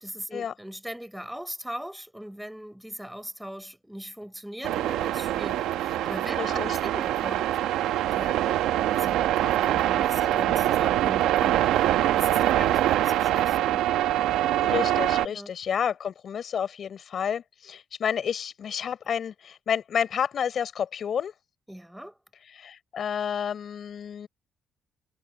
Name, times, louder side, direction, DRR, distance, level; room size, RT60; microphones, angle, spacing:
voice 1, 0.0-7.5 8.1-8.6 8.9-13.9 15.3-15.5 21.7-22.1, equal, 5° right, 5.1 m, -40 dB
sound 1, 4.6-15.3, right 13 dB, 90° right, 1.1 m, -24 dB
voice 2, 6.4-6.8 14.6-21.3 22.5-24.3, left 8 dB, 55° left, 3.9 m, -30 dB
cardioid pair, 90°, 0 cm